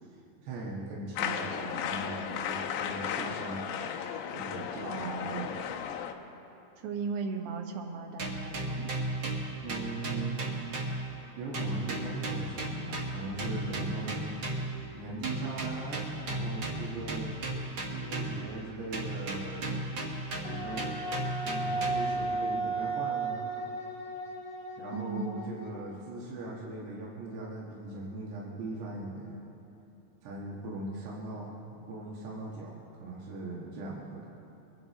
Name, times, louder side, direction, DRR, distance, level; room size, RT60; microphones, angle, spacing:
voice 1, 0.4-3.7 4.3-5.6 9.6-10.5 11.4-14.3 14.9-17.4 17.9-19.9 20.4-21.0 21.4-23.4 24.8-29.4 30.2-34.3, right 2 dB, 90° right, -4 dB, 3.6 m, -39 dB
sound 1, 1.2-6.1, left 8 dB, 85° left, 2.7 m, -35 dB
voice 2, 4.8-5.5 6.8-9.1 24.9-25.5, right 5 dB, 70° right, 4 dB, 2.6 m, -37 dB
sound 2, 8.2-11.3 11.5-14.8 15.2-18.6 18.9-22.2, right 1 dB, 50° right, 1.5 m, -35 dB
Wind instrument woodwind instrument, 20.4-25.9, right 3 dB, 55° left, 3.4 m, -34 dB
23.5 x 10.5 x 4.1 m, 2.8 s
omnidirectional pair, 4.6 m